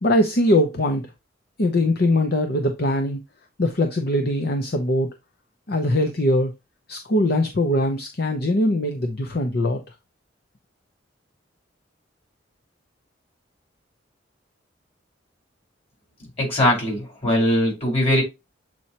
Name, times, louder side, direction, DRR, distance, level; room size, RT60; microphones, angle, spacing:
voice 1, 0.0-1.0 1.6-3.2 3.6-5.1 5.7-6.5 6.9-9.8, left 1 dB, 55° left, 0.8 m, -21 dB
voice 2, 16.4-18.2, left 1 dB, 35° left, 4.2 m, -20 dB
7.8 x 4.4 x 2.9 m
head